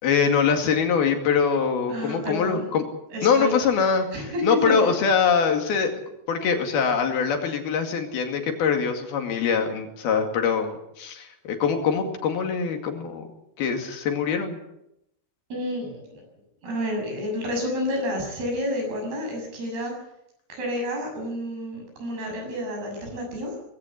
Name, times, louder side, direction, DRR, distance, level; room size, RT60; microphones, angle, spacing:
voice 1, 0.0-2.9 3.2-5.9 6.3-13.3 13.6-14.6, left 6 dB, 70° left, 4 dB, 4.2 m, -23 dB
voice 2, 1.9-2.6 3.1-4.8 15.5-16.2 16.6-19.9 20.5-23.6, left 1 dB, 75° right, 2 dB, 8.7 m, -30 dB
20.0 x 17.0 x 8.2 m, 0.80 s
omnidirectional pair, 4.6 m